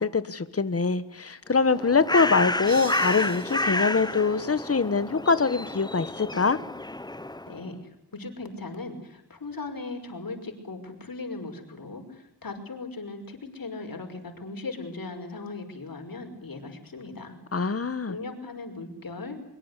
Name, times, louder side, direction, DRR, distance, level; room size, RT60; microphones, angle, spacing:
voice 1, 0.0-6.6 17.5-18.1, left 4 dB, 35° left, 13 dB, 1.5 m, -24 dB
Bird, 1.5-7.6, left 2 dB, 10° left, 0.9 m, -30 dB
sound 1, 2.7-5.0, right 6 dB, 60° right, 1.7 m, -44 dB
voice 2, 7.5-17.4 18.1-19.4, left 3 dB, 55° left, 5 dB, 5.7 m, -38 dB
23.5 x 23.0 x 8.4 m, 0.84 s
wide cardioid pair, 90°, 40 cm